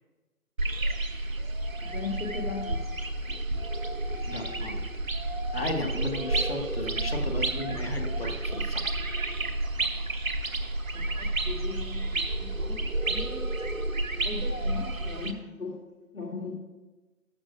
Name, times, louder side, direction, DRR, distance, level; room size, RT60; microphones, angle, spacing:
sound 1, 0.6-15.3, right 2 dB, 65° right, 1.0 m, -30 dB
voice 1, 1.8-2.8 10.9-13.5 14.2-15.8 16.1-16.5, left 4 dB, 70° left, -2 dB, 2.5 m, -38 dB
voice 2, 4.3-4.8 5.5-9.2, left 1 dB, 40° left, 5 dB, 1.3 m, -35 dB
14.5 x 12.5 x 2.5 m, 1.2 s
figure-of-eight pair, 165°, 44 cm